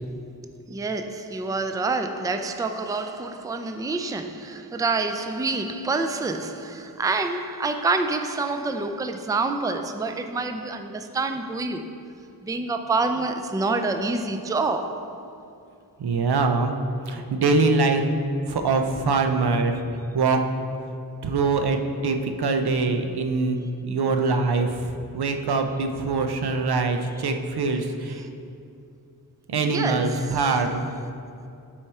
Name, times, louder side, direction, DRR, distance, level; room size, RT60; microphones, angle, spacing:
voice 1, 0.7-11.9 12.4-15.2 29.6-30.6, right 3 dB, 10° right, 0.4 m, -27 dB
voice 2, 16.0-16.7 17.1-18.0 18.5-19.8 20.1-20.4 21.2-24.7 25.1-28.2 29.5-30.8, right 3 dB, 80° right, 0.6 m, -23 dB
8.7 x 4.8 x 4.3 m
wide cardioid pair, 75°, 38 cm